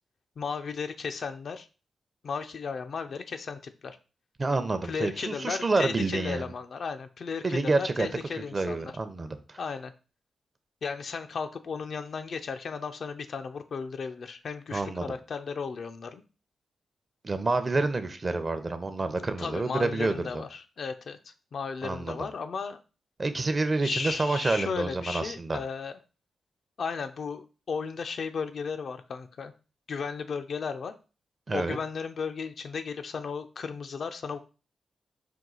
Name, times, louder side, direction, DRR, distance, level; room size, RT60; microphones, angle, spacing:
voice 1, 0.4-1.7 2.2-4.0 4.8-8.9 9.6-9.9 10.8-16.2 19.4-22.8 23.8-26.0 26.8-29.5 29.9-30.9 31.5-34.4, left 5 dB, 65° left, 8 dB, 0.4 m, -35 dB
voice 2, 4.4-6.5 7.4-8.1 8.5-9.6 14.7-15.1 17.2-20.4 21.8-22.3 23.2-25.6 31.5-31.8, right 3 dB, 40° right, 10 dB, 0.6 m, -28 dB
4.6 x 2.3 x 3.9 m, 0.34 s
cardioid pair, 55°, 0 cm